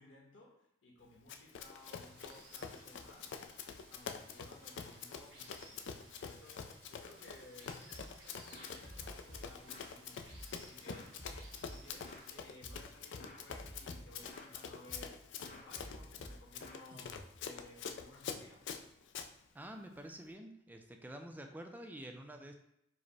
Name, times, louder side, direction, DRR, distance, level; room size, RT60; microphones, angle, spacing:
voice 1, 0.0-3.4 3.9-5.9 6.2-10.3 10.5-11.2 11.6-18.7, left 2 dB, 90° left, -1 dB, 1.2 m, -58 dB
Run, 1.3-19.3, left 6 dB, 65° left, 0.4 m, -46 dB
Water, 1.7-12.4, right 2 dB, 80° right, 1.2 m, -60 dB
sound 1, 7.9-8.2 8.5-9.9 10.3-12.3 12.6-12.9 13.2-14.5 14.9-15.2 15.4-17.5, equal, 40° left, 0.8 m, -52 dB
voice 2, 19.5-22.5, right 1 dB, 10° right, 4 dB, 0.3 m, -48 dB
4.8 x 2.1 x 4.6 m, 0.78 s
head